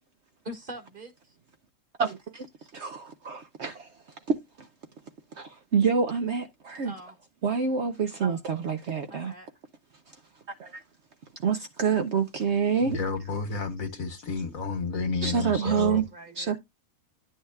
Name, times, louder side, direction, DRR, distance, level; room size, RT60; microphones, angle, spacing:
voice 1, 0.4-1.3 6.8-7.2 9.1-9.5 15.2-16.6, right 1 dB, 35° right, 1.7 m, -43 dB
voice 2, 2.0-2.5 2.7-3.9 4.3-4.7 5.4-6.9 7.4-9.3 10.6-10.8 11.4-13.0 15.2-16.0 16.4-16.6, right 6 dB, 55° right, 0.9 m, -27 dB
voice 3, 12.8-16.0, left 4 dB, 65° left, 1.9 m, -31 dB
10.5 x 6.3 x 2.3 m
omnidirectional pair, 1.6 m